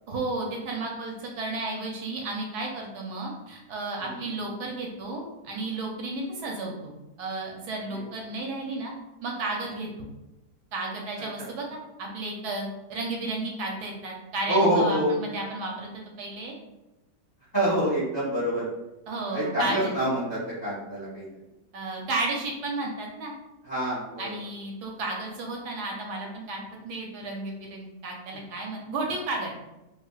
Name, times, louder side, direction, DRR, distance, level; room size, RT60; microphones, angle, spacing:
voice 1, 0.1-8.9 9.2-10.1 10.7-15.9 16.2-16.5 19.1-19.9 21.7-23.3 24.2-29.5, right 2 dB, 75° right, 0 dB, 1.0 m, -33 dB
voice 2, 14.5-15.1 17.5-18.7 19.3-21.3 23.6-24.3, right 1 dB, 30° left, -8 dB, 0.9 m, -26 dB
3.1 x 2.6 x 2.3 m, 0.99 s
omnidirectional pair, 1.8 m